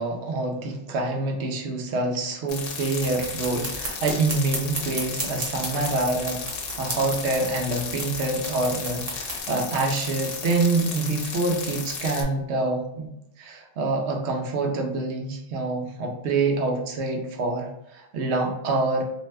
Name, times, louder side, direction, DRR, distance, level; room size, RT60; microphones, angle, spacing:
voice 1, 0.0-6.4 6.7-13.1 13.4-19.0, right 3 dB, 70° right, 1 dB, 0.9 m, -26 dB
sound 1, 2.5-12.2, left 5 dB, 85° left, 0.9 m, -34 dB
sound 2, 3.0-9.4, right 2 dB, 40° right, 0.6 m, -35 dB
2.6 x 2.1 x 3.3 m, 0.83 s
omnidirectional pair, 1.3 m